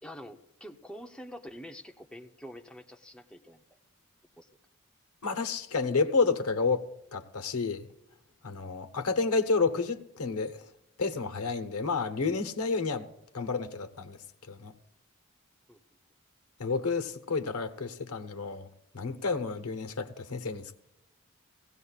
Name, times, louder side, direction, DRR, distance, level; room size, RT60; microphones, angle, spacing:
voice 1, 0.0-3.6 4.4-4.5 15.7-15.8, equal, 5° left, 0.6 m, -46 dB
voice 2, 5.2-6.9 7.1-7.9 8.4-10.6 11.0-13.1 13.3-14.2 14.5-14.7 16.6-18.7 18.9-20.8, left 4 dB, 85° left, 1.0 m, -30 dB
18.0 x 16.5 x 2.4 m
head